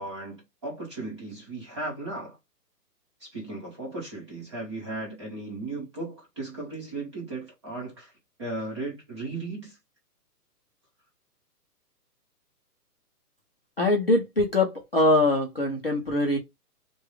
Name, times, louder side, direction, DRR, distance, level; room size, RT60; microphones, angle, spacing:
voice 1, 0.0-2.4 3.2-8.1 8.4-9.8, right 2 dB, 20° right, 1.0 m, -36 dB
voice 2, 13.8-16.4, left 1 dB, 40° left, 0.4 m, -23 dB
3.2 x 2.2 x 3.2 m
hypercardioid pair, 175°, 48 cm